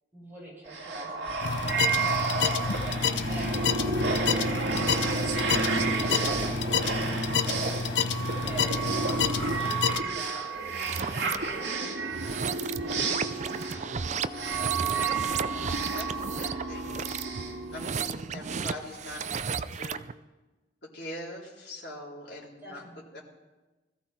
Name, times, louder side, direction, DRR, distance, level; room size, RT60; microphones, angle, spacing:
voice 1, 0.1-3.0 3.3-8.1 8.4-8.9 9.4-11.9 12.4-13.6 18.4-18.8 22.6-23.2, right 1 dB, 10° right, -5 dB, 7.2 m, -46 dB
sound 1, 0.7-18.3, right 3 dB, 80° right, 2.2 m, -31 dB
sound 2, 1.4-10.0, left 5 dB, 85° left, 0.7 m, -29 dB
sound 3, 10.6-11.4 12.1-20.1, right 6 dB, 40° right, 0.5 m, -34 dB
voice 2, 15.2-17.1 17.7-20.1 20.8-22.8 23.1-23.2, left 1 dB, 70° left, -5 dB, 4.0 m, -43 dB
20.5 x 14.5 x 4.4 m, 1.1 s
head